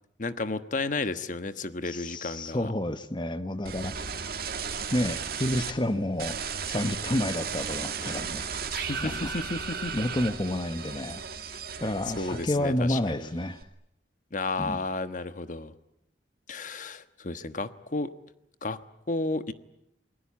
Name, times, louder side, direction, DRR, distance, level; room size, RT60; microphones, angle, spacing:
voice 1, 0.2-2.7 8.7-9.9 12.1-13.3 14.3-15.7 16.5-18.1 18.6-18.8 19.1-19.5, left 3 dB, 45° left, 11 dB, 1.3 m, -32 dB
voice 2, 1.9-4.1 4.9-6.4 6.7-8.5 9.0-9.3 9.9-11.2 11.8-13.6 14.6-14.8, left 1 dB, 25° left, 11 dB, 1.0 m, -30 dB
sound 1, 3.7-5.7 6.2-12.7 13.1-13.6, right 6 dB, 55° right, 2.5 m, -35 dB
28.5 x 21.5 x 8.6 m, 0.81 s
head